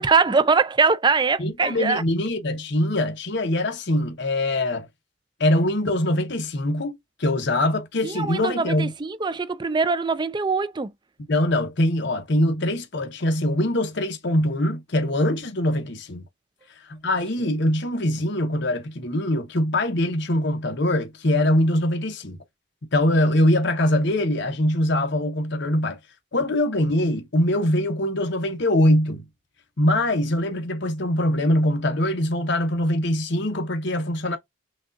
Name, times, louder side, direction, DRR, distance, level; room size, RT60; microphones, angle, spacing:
voice 1, 0.0-2.0 8.0-10.9, right 4 dB, 20° right, 0.4 m, -22 dB
voice 2, 1.4-4.9 5.4-8.9 11.3-16.2 16.8-22.4 22.9-26.0 26.3-29.2 29.8-34.4, left 1 dB, 60° left, 0.9 m, -23 dB
6.3 x 2.3 x 2.5 m
head